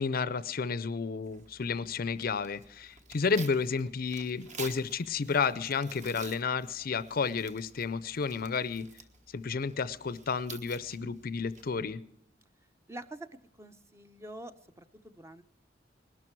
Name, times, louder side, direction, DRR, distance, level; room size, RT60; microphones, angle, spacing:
voice 1, 0.0-8.9 9.3-12.0, left 5 dB, 55° left, 17 dB, 0.6 m, -31 dB
Tearing, 1.2-12.0, right 4 dB, 40° right, 1.2 m, -50 dB
voice 2, 12.9-13.3 13.6-15.4, right 1 dB, 15° right, 10 dB, 0.7 m, -46 dB
20.0 x 12.5 x 4.6 m, 0.75 s
head